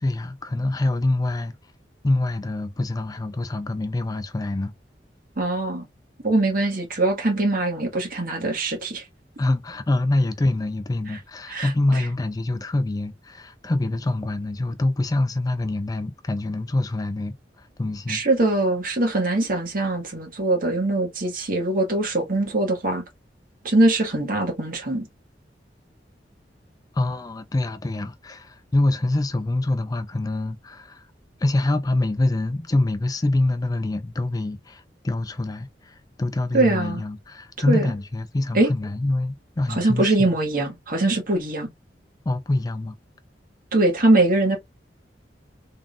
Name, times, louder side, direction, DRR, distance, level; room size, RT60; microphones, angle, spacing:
voice 1, 0.0-1.5 2.0-4.7 9.4-18.2 26.9-31.1 31.4-40.2 42.3-43.0, left 2 dB, 20° left, 0.4 m, -25 dB
voice 2, 5.4-5.8 6.2-9.0 11.1-11.2 11.5-12.1 18.1-23.0 23.6-25.1 36.5-37.0 37.6-37.9 38.5-38.7 39.7-41.7 43.7-44.6, right 2 dB, 55° right, 1.6 m, -22 dB
3.7 x 3.6 x 2.4 m
head